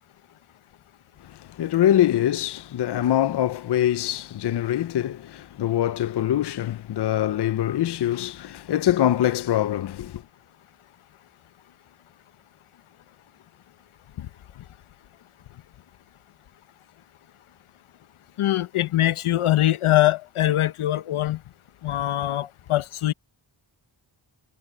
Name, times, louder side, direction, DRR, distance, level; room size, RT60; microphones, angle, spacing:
voice 1, 1.3-10.2, left 12 dB, 55° left, 0.6 m, -24 dB
voice 2, 18.4-21.4 21.8-23.1, left 14 dB, 85° left, 0.9 m, -22 dB
wide cardioid pair, 135°, 48 cm